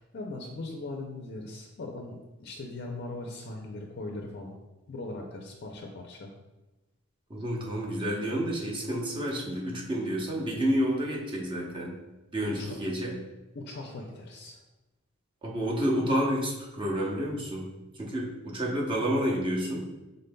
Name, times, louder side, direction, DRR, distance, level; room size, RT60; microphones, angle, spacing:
voice 1, 0.0-4.6 4.9-6.3 12.5-12.8 13.5-14.6, left 2 dB, 55° left, 1 dB, 0.5 m, -40 dB
voice 2, 7.3-12.0 12.3-13.2 15.4-17.7 17.9-19.9, equal, 25° right, -2 dB, 0.8 m, -29 dB
5.2 x 3.9 x 2.2 m, 1.1 s
head